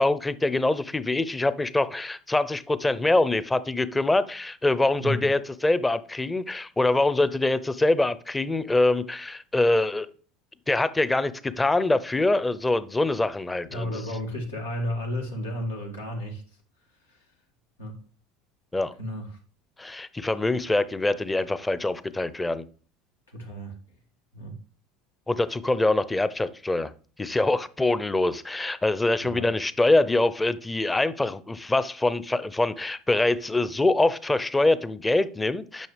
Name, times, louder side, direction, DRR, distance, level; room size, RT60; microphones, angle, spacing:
voice 1, 0.0-10.1 10.7-13.9 18.7-18.9 19.8-22.6 25.3-26.9 27.2-35.9, left 2 dB, 15° left, 0.6 m, -24 dB
voice 2, 13.7-16.4 17.1-17.3 17.8-18.0 19.0-19.4 23.3-23.7 24.3-24.6 29.2-29.5, equal, 90° left, 2.0 m, -32 dB
9.1 x 6.0 x 3.3 m
hypercardioid pair, 75°, 0 cm